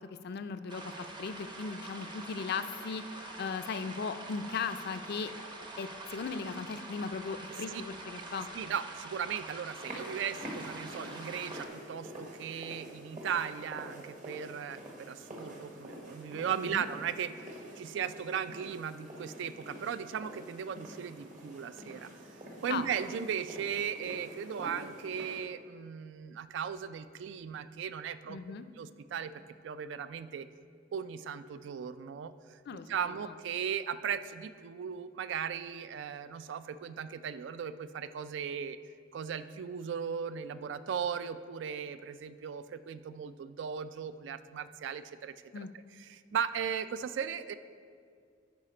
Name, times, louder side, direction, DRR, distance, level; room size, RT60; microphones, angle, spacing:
voice 1, 0.2-8.5 16.6-16.8 22.7-22.8 28.3-28.6 32.7-32.9 33.2-33.3 45.5-45.7, left 5 dB, 55° left, 10 dB, 0.4 m, -37 dB
sound 1, 0.7-11.7, right 2 dB, 25° right, 0.7 m, -45 dB
voice 2, 7.5-7.8 8.5-17.3 17.8-22.1 22.6-28.4 28.8-29.3 29.6-30.5 30.9-32.6 32.9-38.8 39.1-45.3 46.0-47.5, right 7 dB, 70° right, 13 dB, 0.3 m, -37 dB
sound 2, 9.8-25.4, right 1 dB, 45° right, 1.2 m, -47 dB
8.5 x 4.8 x 5.0 m, 2.2 s
head